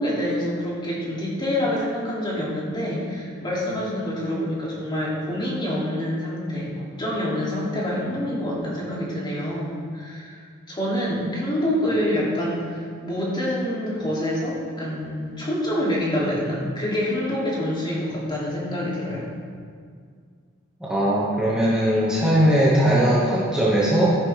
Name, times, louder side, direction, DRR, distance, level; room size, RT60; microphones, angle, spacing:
voice 1, 0.0-19.3, left 1 dB, 25° left, -6 dB, 3.0 m, -26 dB
voice 2, 20.8-24.2, right 1 dB, 5° right, -9 dB, 1.9 m, -19 dB
14.5 x 11.0 x 3.6 m, 2.1 s
head